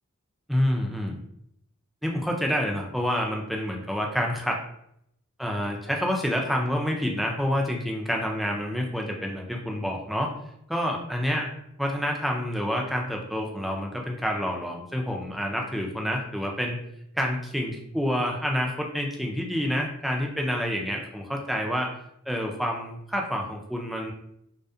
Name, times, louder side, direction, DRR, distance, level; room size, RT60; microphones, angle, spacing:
voice 1, 0.5-1.2 2.0-4.6 5.4-10.3 10.7-11.5 11.8-16.8 17.1-21.9 22.3-24.1, equal, ahead, 0 dB, 0.3 m, -28 dB
2.3 x 2.1 x 2.6 m, 0.74 s
head